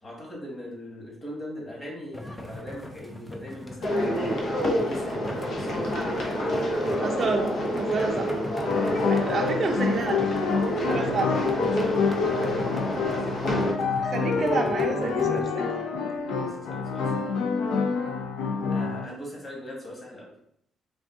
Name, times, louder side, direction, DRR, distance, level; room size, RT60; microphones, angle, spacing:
voice 1, 0.0-4.2 4.7-5.2 5.5-6.6 7.8-8.1 8.8-9.4 10.8-13.3 16.3-17.3 18.7-20.3, left 1 dB, 30° left, -3 dB, 1.5 m, -40 dB
sound 1, 2.1-15.4, left 1 dB, 15° left, 0.5 m, -41 dB
sound 2, 3.8-13.7, equal, 65° left, 0.9 m, -28 dB
voice 2, 7.0-7.5 7.8-8.2 9.1-10.3 10.8-11.3 14.0-15.6, right 3 dB, 45° right, 1 dB, 0.6 m, -28 dB
sound 3, 8.6-19.1, left 5 dB, 90° left, 0.5 m, -27 dB
3.6 x 2.5 x 3.6 m, 0.71 s
cardioid pair, 90°, 0 cm